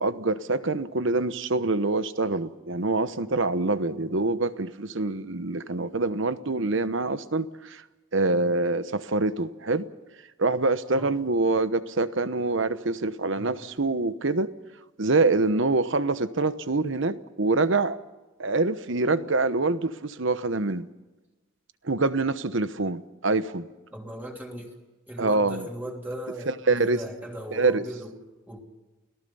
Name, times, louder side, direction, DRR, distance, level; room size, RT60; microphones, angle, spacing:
voice 1, 0.0-7.8 8.1-9.9 10.4-14.5 15.0-18.0 18.4-20.9 21.8-23.7 25.2-25.7 26.5-27.0 27.5-27.9, right 3 dB, 60° right, 1.0 m, -25 dB
voice 2, 23.9-24.7 25.1-28.2 28.5-28.6, equal, 10° right, 3.1 m, -38 dB
29.5 x 18.5 x 5.5 m
head